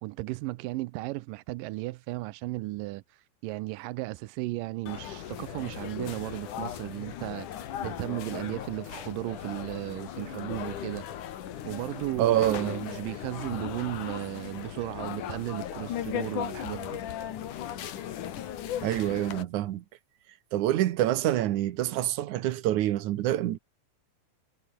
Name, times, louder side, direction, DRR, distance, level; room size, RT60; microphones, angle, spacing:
voice 1, 0.0-7.5 7.8-11.1 11.6-17.0, right 19 dB, 90° right, 2.3 m, -35 dB
sound 1, 4.9-19.4, left 10 dB, 70° left, 3.2 m, -37 dB
voice 2, 12.2-12.8 18.8-19.8 20.5-23.6, right 13 dB, 70° right, 2.3 m, -26 dB
omnidirectional pair, 3.8 m